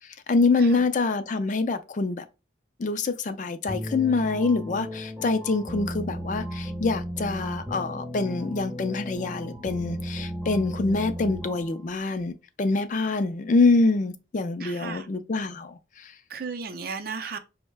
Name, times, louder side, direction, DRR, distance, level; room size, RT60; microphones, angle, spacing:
voice 1, 0.3-2.2 2.8-16.1, left 3 dB, 40° left, 0.4 m, -25 dB
sound 1, 3.7-11.8, equal, 10° right, 0.6 m, -35 dB
voice 2, 14.6-15.1 16.3-17.4, right 5 dB, 50° right, 0.5 m, -35 dB
5.4 x 2.1 x 3.2 m
head